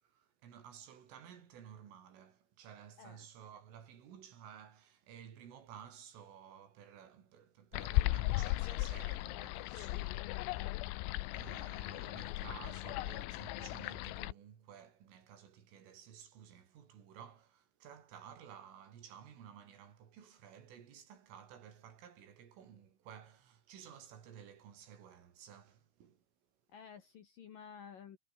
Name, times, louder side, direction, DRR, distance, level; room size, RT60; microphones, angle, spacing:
voice 1, 0.0-26.2, right 8 dB, 75° right, 6.1 m, -54 dB
sound 1, 7.7-14.3, left 19 dB, 85° left, 3.6 m, -37 dB
voice 2, 11.6-12.1 26.7-28.2, left 7 dB, 60° left, 2.6 m, -53 dB
omnidirectional pair, 5.9 m